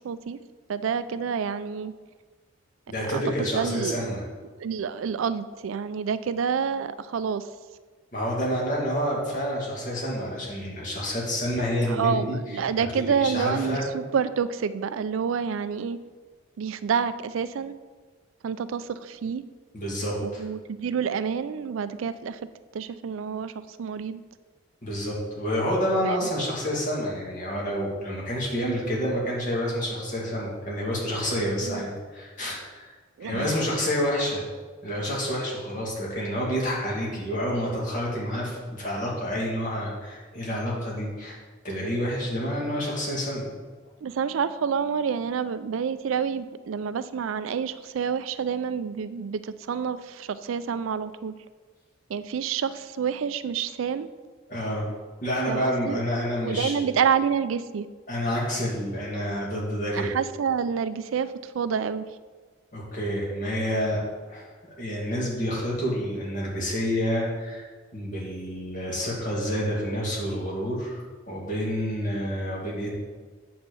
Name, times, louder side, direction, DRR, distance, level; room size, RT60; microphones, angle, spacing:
voice 1, 0.0-0.4 0.7-1.9 3.1-4.2 4.4-7.5 11.9-16.0 16.6-17.7 18.4-19.4 20.2-22.4 22.7-24.2 26.0-26.3 31.6-31.8 33.2-33.5 44.0-51.3 52.1-54.1 55.5-56.0 56.4-57.9 59.9-62.0, right 6 dB, 80° right, 13 dB, 0.4 m, -28 dB
voice 2, 2.9-4.2 8.1-12.3 12.8-13.8 19.7-20.4 24.8-32.9 33.2-34.4 34.8-41.4 41.6-43.5 54.5-54.9 55.2-56.9 58.1-60.1 62.7-64.0 64.3-67.7 67.9-72.9, equal, 40° left, -4 dB, 2.3 m, -28 dB
7.9 x 4.3 x 6.9 m, 1.4 s
head